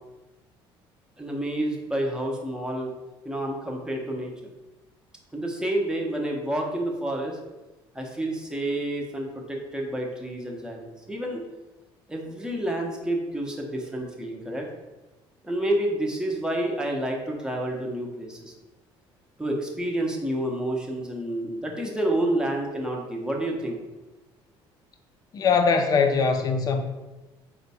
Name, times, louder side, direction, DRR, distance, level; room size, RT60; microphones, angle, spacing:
voice 1, 1.2-2.9 3.2-4.3 5.3-7.4 7.9-11.4 12.1-14.7 15.4-18.5 19.4-23.8, right 1 dB, 5° right, 0 dB, 0.7 m, -29 dB
voice 2, 25.3-26.8, left 5 dB, 40° left, 6 dB, 0.5 m, -21 dB
4.4 x 2.2 x 4.0 m, 1.1 s
cardioid pair, 120°, 10 cm